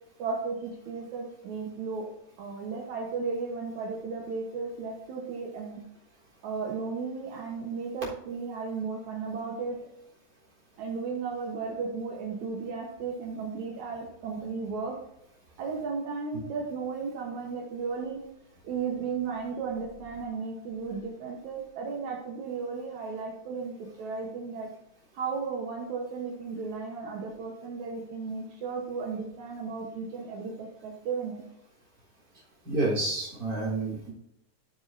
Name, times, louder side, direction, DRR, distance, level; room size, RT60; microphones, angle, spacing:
voice 1, 0.2-2.1 2.4-5.8 6.4-9.8 10.8-14.9 15.6-18.2 18.6-24.7 25.1-31.4, right 5 dB, 70° right, -1 dB, 2.6 m, -34 dB
voice 2, 32.6-34.1, right 2 dB, 30° right, -6 dB, 4.4 m, -29 dB
14.0 x 7.1 x 2.7 m, 0.84 s
omnidirectional pair, 3.5 m